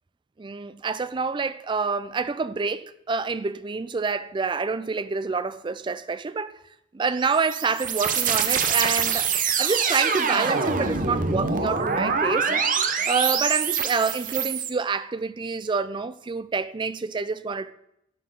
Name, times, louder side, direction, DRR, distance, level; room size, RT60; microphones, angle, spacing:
voice 1, 0.4-6.6 6.9-12.6 13.1-17.7, right 4 dB, 25° right, 0.3 m, -27 dB
sound 1, 7.1-14.7, right 6 dB, 45° right, 0.8 m, -25 dB
11.5 x 4.4 x 6.5 m
head